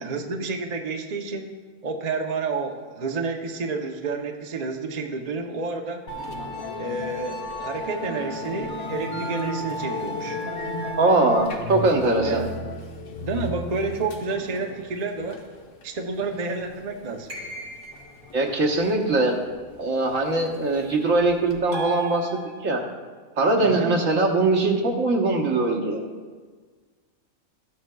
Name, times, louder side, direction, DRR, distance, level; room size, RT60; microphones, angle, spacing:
voice 1, 0.0-1.5 1.8-6.0 6.8-10.4 12.2-12.5 13.2-15.4 15.8-17.3 23.6-23.9, right 3 dB, 45° right, 3 dB, 0.6 m, -30 dB
Musical instrument, 6.1-21.6, left 1 dB, 80° left, 1.3 m, -35 dB
voice 2, 11.0-12.4 18.3-19.3 19.8-22.8 23.4-26.0, right 2 dB, 70° right, 0 dB, 1.5 m, -21 dB
sound 1, 17.3-18.2 21.7-22.9, right 2 dB, 90° right, 3.0 m, -35 dB
13.5 x 8.5 x 2.3 m, 1.5 s
omnidirectional pair, 1.5 m